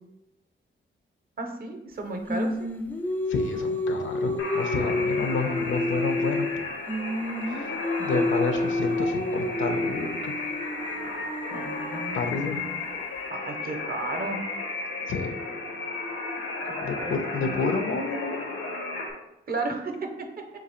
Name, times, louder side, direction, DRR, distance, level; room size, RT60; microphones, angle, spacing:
voice 1, 1.4-2.5 8.0-8.2 11.5-12.8 13.3-14.4 16.7-17.5 19.5-20.3, right 3 dB, 45° right, 4 dB, 0.6 m, -34 dB
Singing, 2.3-6.6 6.9-12.9, left 2 dB, 10° left, 0.4 m, -29 dB
voice 2, 3.3-6.6 7.5-7.7 8.0-10.3 12.1-12.6 15.1-15.3 16.8-18.4, left 4 dB, 70° left, 6 dB, 0.6 m, -30 dB
sound 1, 4.4-19.1, left 3 dB, 85° left, 0.9 m, -34 dB
3.9 x 2.7 x 4.3 m, 0.96 s
wide cardioid pair, 155°, 21 cm